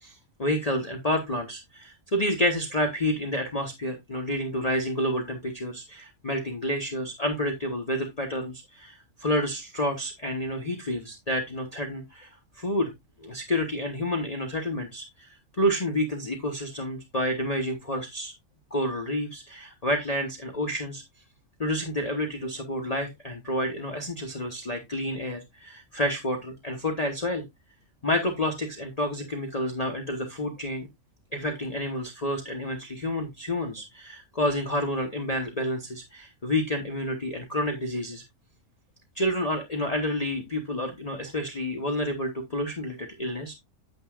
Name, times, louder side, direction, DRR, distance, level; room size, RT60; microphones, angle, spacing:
voice 1, 0.0-12.3 12.6-12.9 13.2-15.3 15.6-18.3 18.7-21.0 21.6-27.4 28.0-30.9 31.3-38.2 39.2-43.5, left 1 dB, 30° left, 4 dB, 1.1 m, -29 dB
9.2 x 7.8 x 2.4 m, 0.18 s
omnidirectional pair, 1.3 m